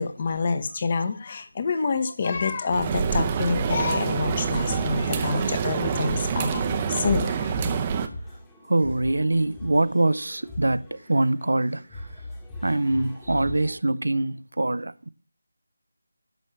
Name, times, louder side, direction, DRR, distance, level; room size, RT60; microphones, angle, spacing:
voice 1, 0.0-7.6, left 4 dB, 30° left, 0.9 m, -27 dB
sound 1, 2.3-13.8, left 1 dB, 10° left, 1.2 m, -40 dB
sound 2, 2.7-8.1, right 6 dB, 20° right, 0.6 m, -26 dB
voice 2, 8.7-12.0 12.6-15.1, right 2 dB, 65° right, 0.5 m, -24 dB
10.5 x 7.4 x 3.1 m
figure-of-eight pair, 160°, 0 cm